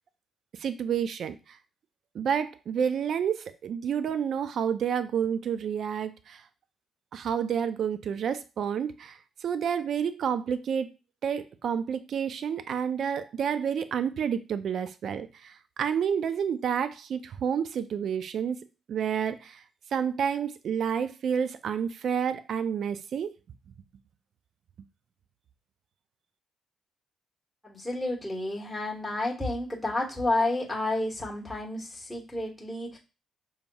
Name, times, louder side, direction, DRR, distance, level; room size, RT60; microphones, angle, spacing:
voice 1, 0.6-1.4 2.1-6.4 7.1-10.9 11.2-18.6 18.9-19.6 19.9-23.3, right 7 dB, 65° right, 12 dB, 0.4 m, -29 dB
voice 2, 27.6-33.0, left 2 dB, 5° left, -4 dB, 1.3 m, -30 dB
5.3 x 2.9 x 2.3 m, 0.31 s
cardioid pair, 90°, 0 cm